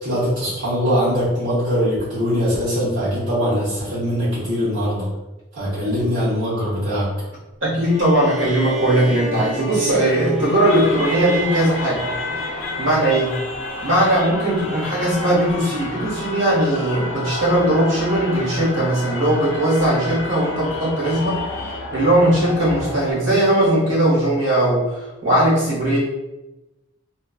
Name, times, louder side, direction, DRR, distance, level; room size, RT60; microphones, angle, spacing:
voice 1, 0.0-5.1 5.5-7.1, equal, 60° right, -10 dB, 0.9 m, -22 dB
voice 2, 7.6-12.1 12.8-13.3 13.8-21.4 21.9-26.0, right 1 dB, 85° right, -6 dB, 1.2 m, -19 dB
sound 1, 7.8-13.1, right 1 dB, ahead, 0.7 m, -32 dB
sound 2, 10.6-23.1, left 2 dB, 80° left, 0.4 m, -30 dB
2.4 x 2.3 x 2.3 m, 1.0 s
head